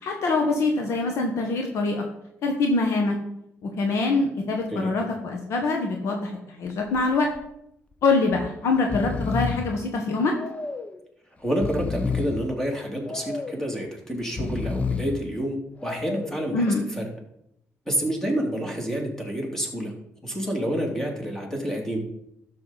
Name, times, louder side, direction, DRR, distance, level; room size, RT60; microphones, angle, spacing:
voice 1, 0.0-2.0 2.4-3.1 3.6-6.3 6.6-7.3 8.0-10.3 16.5-16.8, left 3 dB, 70° left, 2 dB, 1.5 m, -24 dB
Breathing, 6.7-7.0 7.3-7.4 8.3-8.5 8.8-9.8 10.4-11.0 11.5-12.5 13.1-13.7 14.2-15.2 15.8-16.4, left 4 dB, 25° left, 0.7 m, -30 dB
voice 2, 11.4-17.0 17.9-19.9 20.2-22.0, equal, 10° left, 0 dB, 2.9 m, -28 dB
12.0 x 6.6 x 4.2 m, 0.79 s
cardioid pair, 85°, 5 cm